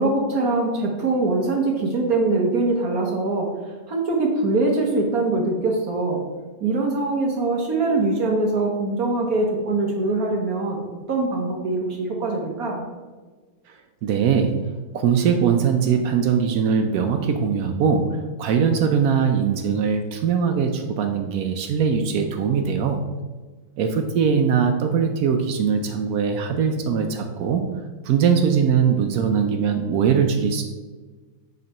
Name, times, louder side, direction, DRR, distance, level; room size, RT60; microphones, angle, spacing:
voice 1, 0.0-3.5 3.9-6.2 6.6-10.8 11.1-12.8, right 2 dB, 55° right, 0 dB, 1.2 m, -23 dB
voice 2, 14.0-14.6 14.9-23.0 23.8-27.6 28.0-30.6, right 6 dB, 85° right, 5 dB, 0.8 m, -21 dB
6.7 x 3.3 x 5.3 m, 1.3 s
omnidirectional pair, 2.2 m